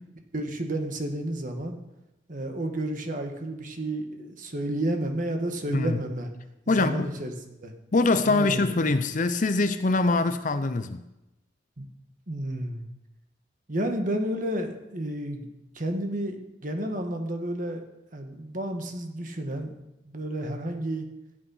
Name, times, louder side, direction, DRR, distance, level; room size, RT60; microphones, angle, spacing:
voice 1, 0.3-1.8 2.3-6.3 6.7-7.7 8.2-8.7 11.8-11.9 12.3-12.9 13.7-15.5 15.7-16.4 16.6-17.8 18.1-19.7 20.0-21.1, right 1 dB, 45° right, 1.5 m, -31 dB
voice 2, 5.7-6.0 6.7-7.1 7.9-11.0, left 3 dB, 40° left, 0.6 m, -24 dB
14.0 x 8.5 x 5.6 m
head